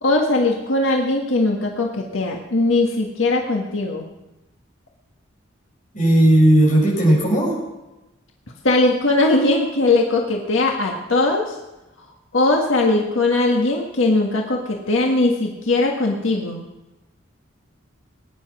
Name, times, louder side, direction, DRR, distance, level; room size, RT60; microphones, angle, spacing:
voice 1, 0.0-4.1 8.6-11.6 12.3-16.7, left 2 dB, 90° left, 0 dB, 1.7 m, -20 dB
voice 2, 5.9-7.6, right 1 dB, 40° left, -4 dB, 6.8 m, -15 dB
20.5 x 9.8 x 6.2 m, 1.0 s
head